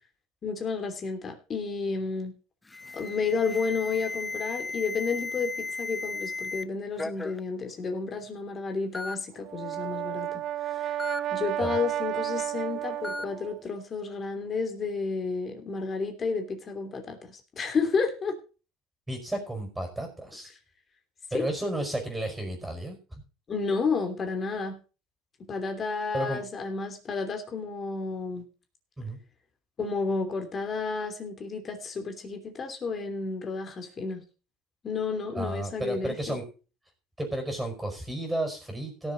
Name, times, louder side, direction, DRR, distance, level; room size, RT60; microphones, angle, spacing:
voice 1, 0.4-2.3 2.9-11.0 11.3-18.3 21.3-21.4 23.5-24.8 25.5-28.4 29.8-34.2 34.8-36.4, left 4 dB, 30° left, 5 dB, 3.0 m, -31 dB
Alarm, 2.7-6.6 7.0-7.4 8.2-8.3 8.9-9.2 11.0-11.2 13.0-13.3, left 3 dB, 10° left, 0.6 m, -35 dB
Brass instrument, 9.3-13.6, right 12 dB, 50° right, 0.6 m, -32 dB
voice 2, 19.1-20.5 21.3-23.0 26.1-26.4 29.0-29.2 35.3-36.4 37.2-39.1, right 1 dB, 5° right, 3 dB, 5.1 m, -32 dB
17.5 x 7.1 x 4.1 m, 0.34 s
supercardioid pair, 120°, 0 cm